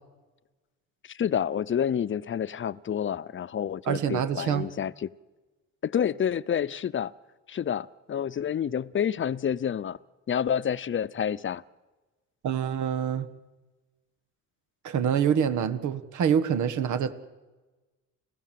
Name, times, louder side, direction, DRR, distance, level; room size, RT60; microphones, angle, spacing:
voice 1, 1.0-5.1 5.8-7.1 7.5-10.0 10.3-11.6, left 8 dB, 40° left, 18 dB, 0.7 m, -29 dB
voice 2, 3.9-4.7 12.4-13.3 14.8-17.1, right 8 dB, 75° right, 12 dB, 1.6 m, -26 dB
29.5 x 16.0 x 7.7 m, 1.2 s
cardioid pair, 90°, 30 cm